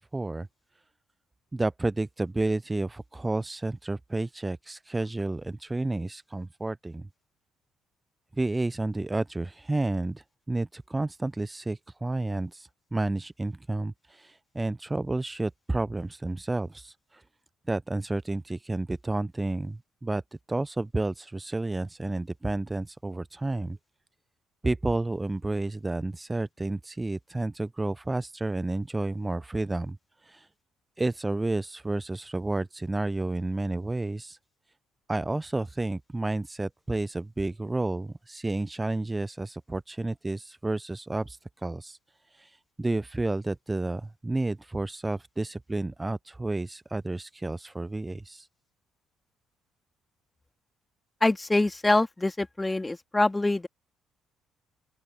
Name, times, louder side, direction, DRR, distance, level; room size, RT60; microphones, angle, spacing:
voice 1, 0.1-0.5 1.5-7.1 8.3-17.2 17.7-20.2 20.5-23.8 24.6-30.0 30.2-30.5 31.0-34.4 35.1-42.0 42.3-48.5, right 2 dB, 20° right, 0.7 m, -31 dB
voice 2, 51.2-53.7, left 2 dB, 15° left, 2.2 m, -25 dB
open air
hypercardioid pair, 45°, 0 cm